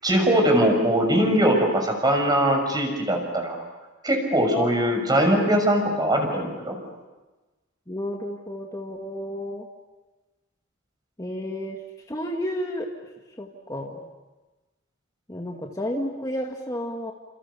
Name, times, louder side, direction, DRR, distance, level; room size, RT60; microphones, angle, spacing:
voice 1, 0.0-3.6 4.0-6.7, right 1 dB, 20° right, 3 dB, 6.3 m, -21 dB
voice 2, 7.9-9.7 11.2-11.8 12.1-12.9 13.4-14.0 15.3-17.1, left 1 dB, 20° left, 0 dB, 2.0 m, -31 dB
29.5 x 28.0 x 7.0 m, 1.2 s
head